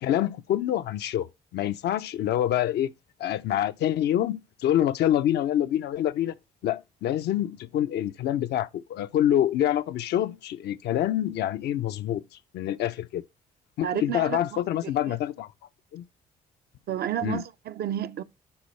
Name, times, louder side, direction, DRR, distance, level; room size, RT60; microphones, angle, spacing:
voice 1, 0.0-1.3 1.5-2.9 3.2-6.3 6.6-12.2 12.5-13.2 13.8-15.5 15.9-16.0 17.2-17.4, left 11 dB, 65° left, 0.5 m, -26 dB
voice 2, 13.8-15.2 16.9-18.2, right 10 dB, 60° right, 0.6 m, -32 dB
11.5 x 4.0 x 3.1 m
hypercardioid pair, 55°, 18 cm